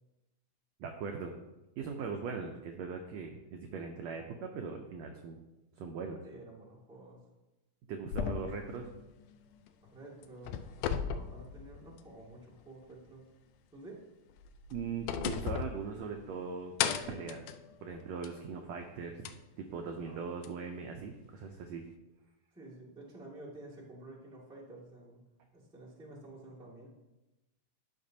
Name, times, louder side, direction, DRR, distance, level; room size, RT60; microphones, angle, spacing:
voice 1, 0.8-1.3 1.8-5.4 5.8-6.2 7.9-8.9 14.7-16.7 17.1-17.4 17.8-19.3 19.6-21.8, right 5 dB, 85° right, 3 dB, 1.5 m, -40 dB
voice 2, 6.2-7.2 9.9-10.7 11.0-13.3 13.7-14.0 20.0-20.2 22.5-26.9, right 2 dB, 5° right, -6 dB, 1.0 m, -51 dB
sound 1, 8.1-9.9 10.2-12.3 12.6-12.7 14.3-16.4 16.8-18.5 19.3-19.4 20.4-20.5, left 8 dB, 80° left, 1.9 m, -37 dB
12.0 x 6.1 x 2.7 m, 1.0 s
omnidirectional pair, 3.8 m